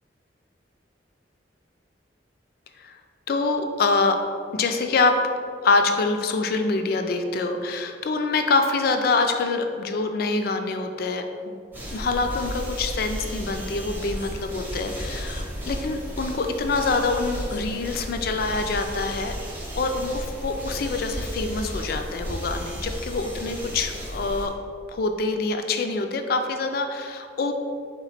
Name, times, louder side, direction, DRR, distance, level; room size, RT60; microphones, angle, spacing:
voice 1, 3.3-4.2 4.5-5.2 5.6-11.5 11.9-19.3 19.8-24.5 24.9-27.5, left 3 dB, 55° left, 6 dB, 0.3 m, -25 dB
sound 1, 11.7-24.5, equal, 10° right, 0.6 m, -33 dB
4.1 x 3.0 x 4.1 m, 2.3 s
head